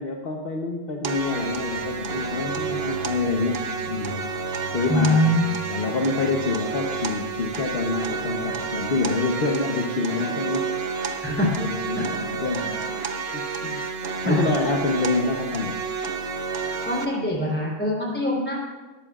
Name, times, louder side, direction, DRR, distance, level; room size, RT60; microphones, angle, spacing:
voice 1, 0.0-4.2 4.7-5.3 5.7-10.7 11.5-12.7 13.3-13.9 14.2-15.8, left 3 dB, 45° left, 1 dB, 1.1 m, -27 dB
sound 1, 1.0-17.1, right 5 dB, 50° right, 1.0 m, -30 dB
sound 2, 1.4-8.7, equal, 85° right, 1.7 m, -42 dB
voice 2, 4.9-5.6 11.2-11.6 11.9-12.1 12.5-12.7 14.2-14.4 16.9-18.6, left 1 dB, 5° left, -3 dB, 3.6 m, -23 dB
18.5 x 13.0 x 2.4 m, 1.3 s
omnidirectional pair, 1.5 m